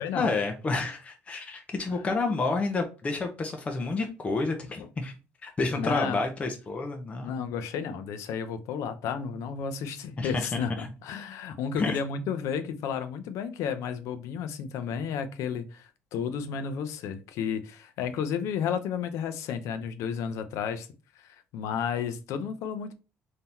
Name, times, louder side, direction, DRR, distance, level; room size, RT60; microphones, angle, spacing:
voice 1, 0.0-5.1 5.4-7.4 10.2-10.5 10.8-10.9 11.8-12.0, left 3 dB, 25° left, 0.7 m, -30 dB
voice 2, 5.7-6.2 7.2-20.9 21.2-23.0, left 7 dB, 80° left, 0.6 m, -32 dB
3.8 x 2.8 x 4.3 m
cardioid pair, 130°, 5 cm